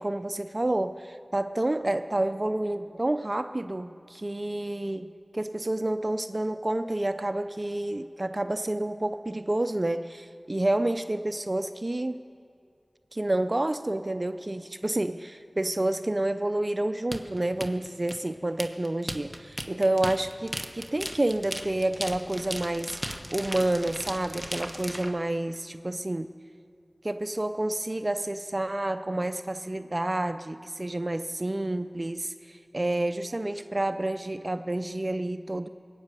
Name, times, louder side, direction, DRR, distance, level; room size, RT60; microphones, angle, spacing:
voice 1, 0.0-12.2 13.1-23.0 23.3-26.3 27.0-35.7, right 1 dB, 40° right, 10 dB, 0.4 m, -29 dB
sound 1, 17.1-25.1, equal, 5° left, 1.0 m, -36 dB
22.5 x 8.9 x 6.8 m, 2.3 s
wide cardioid pair, 50°, 0 cm